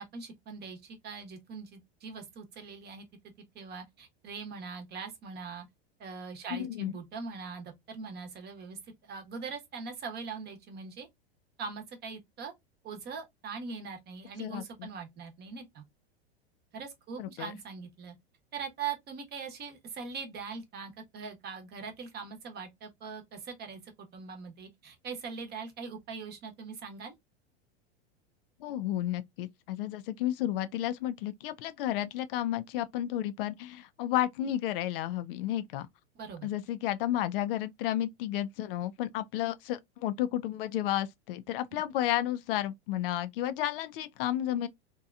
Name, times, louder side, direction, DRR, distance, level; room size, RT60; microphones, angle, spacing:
voice 1, 0.0-3.1 3.5-5.7 6.0-11.1 11.6-12.5 12.8-15.8 16.7-18.1 18.5-27.1 36.1-36.5 41.7-41.8, right 5 dB, 30° right, 0.9 m, -41 dB
voice 2, 6.5-6.9 14.4-14.9 17.2-17.5 28.6-35.9 36.4-44.7, left 12 dB, 60° left, 0.4 m, -32 dB
2.8 x 2.2 x 2.3 m
hypercardioid pair, 110°, 31 cm